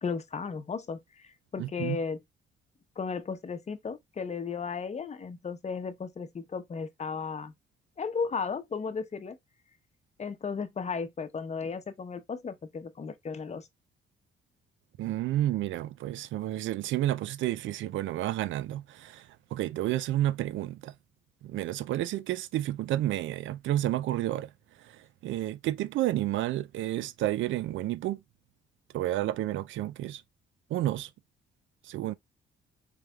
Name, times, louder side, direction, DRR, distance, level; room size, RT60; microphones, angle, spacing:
voice 1, 0.0-1.0 1.5-2.2 3.0-7.5 8.0-9.4 10.2-13.7, left 5 dB, 35° left, 0.8 m, -35 dB
voice 2, 1.6-2.0 15.0-20.9 21.4-24.5 24.8-28.2 28.9-30.2 30.7-31.1 31.8-32.1, right 14 dB, 75° right, 0.4 m, -31 dB
5.1 x 3.3 x 2.3 m
cardioid pair, 90°, 20 cm